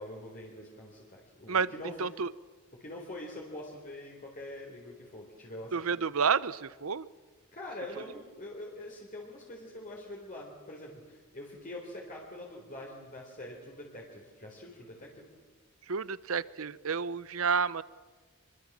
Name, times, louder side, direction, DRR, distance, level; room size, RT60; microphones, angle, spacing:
voice 1, 0.0-2.0 2.8-5.9 7.5-15.3, left 1 dB, 35° left, -2 dB, 3.9 m, -44 dB
voice 2, 2.0-2.3 5.7-7.1 15.9-17.8, right 5 dB, 70° right, 18 dB, 0.8 m, -30 dB
25.5 x 23.5 x 7.5 m, 1.4 s
head